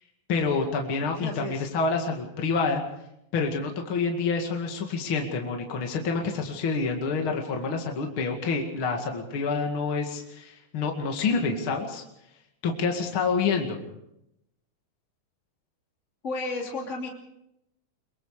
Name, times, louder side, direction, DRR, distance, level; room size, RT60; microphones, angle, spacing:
voice 1, 0.3-2.8 3.3-12.0 12.6-13.8, left 4 dB, 45° left, 2 dB, 2.8 m, -27 dB
voice 2, 1.2-1.7 16.2-17.1, left 2 dB, 25° left, 0 dB, 3.1 m, -33 dB
24.0 x 23.0 x 5.0 m, 0.82 s
omnidirectional pair, 3.6 m